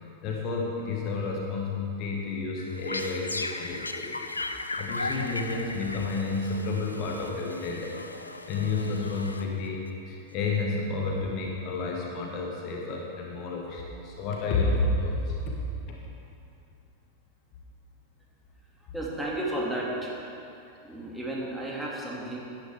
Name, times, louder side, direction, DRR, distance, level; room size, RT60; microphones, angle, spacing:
voice 1, 0.2-4.2 4.8-8.0 8.5-9.8 10.1-15.6 15.9-16.0, left 3 dB, 40° left, -1 dB, 1.7 m, -30 dB
sound 1, 2.6-9.9, left 2 dB, 80° left, 0.6 m, -37 dB
voice 2, 18.8-20.2 20.8-22.4, right 1 dB, 5° right, -5 dB, 2.3 m, -33 dB
17.0 x 10.5 x 3.6 m, 2.8 s
figure-of-eight pair, 90°, 0 cm